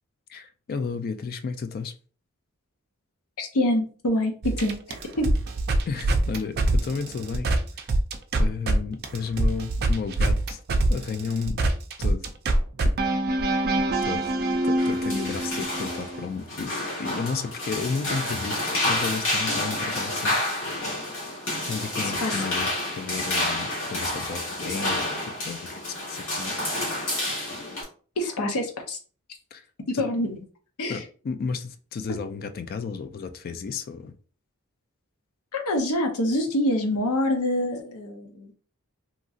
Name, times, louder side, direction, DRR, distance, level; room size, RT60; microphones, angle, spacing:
voice 1, 0.3-1.9 5.9-7.5 7.8-7.9 8.4-10.6 10.9-11.6 12.0-12.3 12.8-12.9 14.0-14.3 14.6-21.0 21.6-26.6 29.5-29.6 29.9-30.0 30.9-34.1, left 5 dB, 45° left, 0.3 m, -33 dB
voice 2, 3.4-5.3 22.0-22.4 28.2-29.0 29.9-30.4 30.8-31.0 35.5-38.5, left 1 dB, 90° left, 0.6 m, -26 dB
sound 1, 4.4-8.8 9.0-16.3, right 2 dB, 45° right, 0.4 m, -25 dB
sound 2, 14.8-27.8, left 1 dB, 60° left, 1.3 m, -29 dB
2.8 x 2.6 x 2.4 m
head